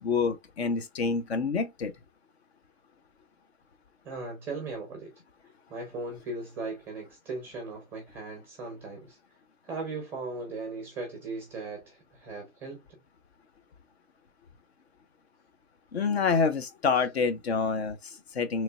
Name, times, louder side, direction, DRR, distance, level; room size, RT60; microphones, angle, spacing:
voice 1, 0.0-1.9 15.9-18.6, left 5 dB, 50° left, 0.7 m, -27 dB
voice 2, 4.0-5.1 5.7-9.2 9.6-12.8, right 3 dB, 5° right, 0.6 m, -38 dB
3.9 x 3.1 x 2.2 m
hypercardioid pair, 150°, 40 cm